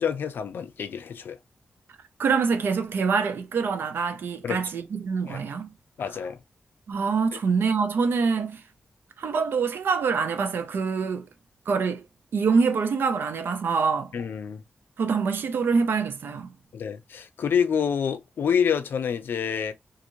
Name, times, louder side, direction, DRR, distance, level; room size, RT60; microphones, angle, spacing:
voice 1, 0.0-1.4 4.4-4.6 5.3-5.4 6.0-6.4 7.3-7.4 14.1-14.6 16.7-19.7, left 7 dB, 85° left, 0.4 m, -27 dB
voice 2, 2.2-5.7 6.9-8.6 9.2-11.3 11.7-12.1 12.3-14.1 15.0-16.5, right 5 dB, 85° right, 0.5 m, -25 dB
2.9 x 2.5 x 2.6 m
wide cardioid pair, 155°, 4 cm